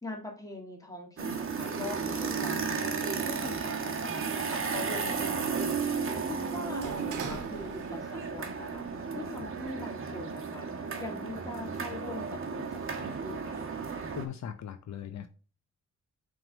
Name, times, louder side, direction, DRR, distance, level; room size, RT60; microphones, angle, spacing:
voice 1, 0.0-8.9 9.1-13.7, left 2 dB, 10° left, 1.8 m, -42 dB
sound 1, 1.2-14.3, right 5 dB, 45° right, 1.2 m, -34 dB
Sliding door, 3.5-8.4 8.7-9.6, right 5 dB, 80° right, 1.1 m, -45 dB
voice 2, 14.2-15.3, left 9 dB, 65° left, 0.6 m, -39 dB
5.8 x 3.7 x 5.2 m
cardioid pair, 105°, 30 cm